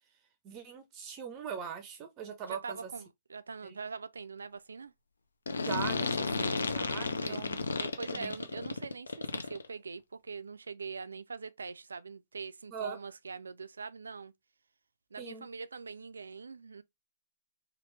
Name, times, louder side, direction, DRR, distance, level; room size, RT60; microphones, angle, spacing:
voice 1, 0.4-2.9 3.6-3.8 5.6-7.6 8.1-8.3 12.7-13.0 15.2-15.5, right 7 dB, 30° right, 0.5 m, -41 dB
voice 2, 2.4-4.9 6.9-7.4 7.8-14.3 15.1-16.8, right 5 dB, 85° right, 0.3 m, -43 dB
sound 1, 5.5-9.7, left 4 dB, 85° left, 0.4 m, -33 dB
3.0 x 2.4 x 3.1 m
hypercardioid pair, 125°, 0 cm